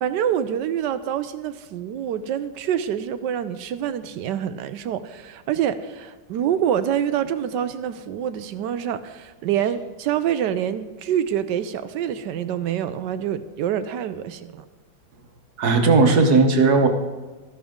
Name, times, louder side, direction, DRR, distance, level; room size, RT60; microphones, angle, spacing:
voice 1, 0.0-14.6, right 9 dB, 75° right, 12 dB, 1.1 m, -26 dB
voice 2, 15.6-16.9, right 3 dB, 60° right, 5 dB, 1.5 m, -16 dB
13.5 x 11.0 x 3.6 m, 1.3 s
omnidirectional pair, 2.1 m